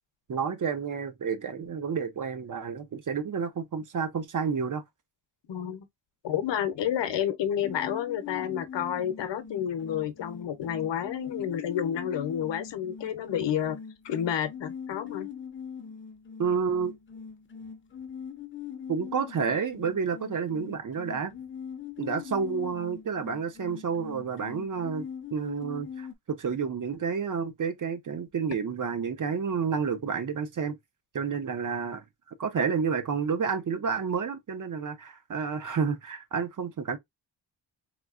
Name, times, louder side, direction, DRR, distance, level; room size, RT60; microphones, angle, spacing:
voice 1, 0.3-4.8 16.4-17.0 18.9-21.3 22.0-30.8 31.1-32.0 32.4-37.0, right 6 dB, 45° right, 0.6 m, -30 dB
voice 2, 5.5-5.9 6.2-13.8 14.0-15.3, left 9 dB, 75° left, 0.7 m, -30 dB
sound 1, 7.6-26.1, left 7 dB, 30° left, 0.5 m, -42 dB
3.7 x 2.7 x 2.3 m
wide cardioid pair, 140°, 43 cm